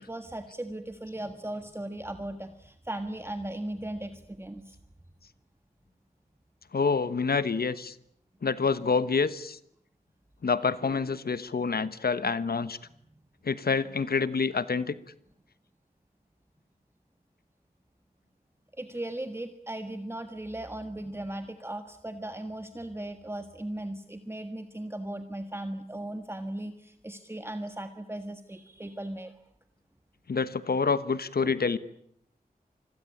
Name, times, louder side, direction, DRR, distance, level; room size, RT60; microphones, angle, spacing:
voice 1, 0.0-4.8 18.8-29.3 31.4-31.6, right 1 dB, 15° right, 8 dB, 1.6 m, -37 dB
voice 2, 6.7-7.9 8.4-9.6 10.4-12.8 13.4-14.9 30.3-31.8, left 5 dB, 70° left, 14 dB, 1.2 m, -27 dB
27.0 x 21.5 x 8.6 m, 0.72 s
wide cardioid pair, 85°, 16 cm